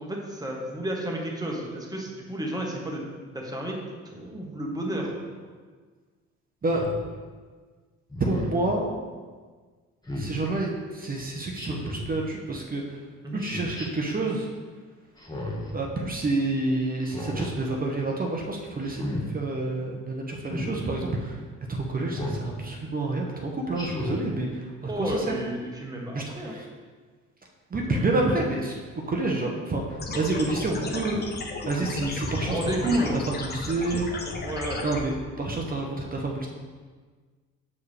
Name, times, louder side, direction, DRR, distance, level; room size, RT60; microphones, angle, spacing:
voice 1, 0.0-3.8 4.0-5.1 13.2-13.4 24.8-26.5 27.9-28.0 32.4-33.2 34.4-34.8, right 1 dB, 10° right, -1 dB, 1.2 m, -31 dB
Speech synthesizer, 6.7-7.0 8.1-8.6 10.0-10.4 11.6-12.1 13.4-13.9 15.2-15.7 17.0-17.5 18.8-19.2 20.4-20.8 22.1-22.4 23.7-24.2, left 1 dB, 15° left, 1.1 m, -33 dB
voice 2, 8.2-8.9 10.1-13.0 13.3-14.5 15.7-21.4 21.7-25.3 26.1-26.7 27.7-32.8 33.2-34.3 34.8-36.5, right 2 dB, 30° right, 0 dB, 0.8 m, -29 dB
sound 1, 30.0-35.0, left 3 dB, 35° left, 0.8 m, -34 dB
7.1 x 4.7 x 3.3 m, 1.5 s
cardioid pair, 90°, 30 cm